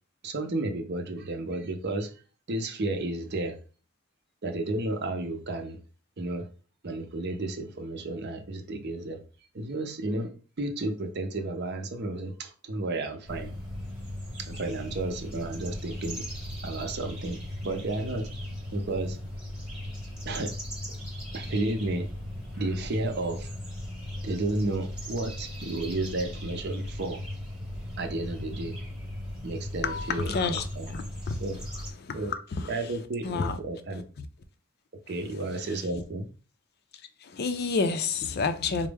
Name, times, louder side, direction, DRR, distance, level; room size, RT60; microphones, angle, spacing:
voice 1, 0.2-2.1 2.5-3.6 4.4-5.8 6.2-6.5 6.8-9.2 9.5-10.3 10.6-13.5 14.4-16.2 16.6-18.3 18.7-19.2 20.3-20.5 21.3-22.1 22.6-23.5 24.2-27.2 28.0-28.8 29.4-30.9 31.4-31.6 32.1-32.3 32.7-34.0 35.1-36.2, right 2 dB, 50° right, 0.6 m, -32 dB
sound 1, 13.3-31.9, left 1 dB, 5° right, 1.0 m, -38 dB
voice 2, 29.8-30.6 30.9-31.4 32.0-32.7 33.2-33.6 34.2-34.3 37.2-38.9, left 4 dB, 50° left, 0.4 m, -29 dB
4.3 x 2.0 x 3.4 m
head